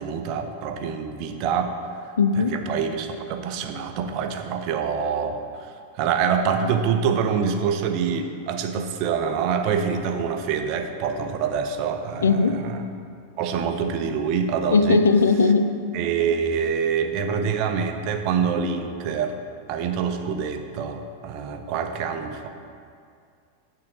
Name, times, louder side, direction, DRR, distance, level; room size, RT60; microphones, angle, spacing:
voice 1, 0.0-1.8 2.5-5.4 5.9-12.8 13.4-15.0 15.9-19.4 19.7-22.5, right 6 dB, 40° right, 6 dB, 0.6 m, -25 dB
voice 2, 2.2-2.6 12.2-12.6 14.7-15.7, left 4 dB, 70° left, 10 dB, 0.3 m, -18 dB
8.6 x 3.8 x 6.2 m, 2.3 s
figure-of-eight pair, 90°, 0 cm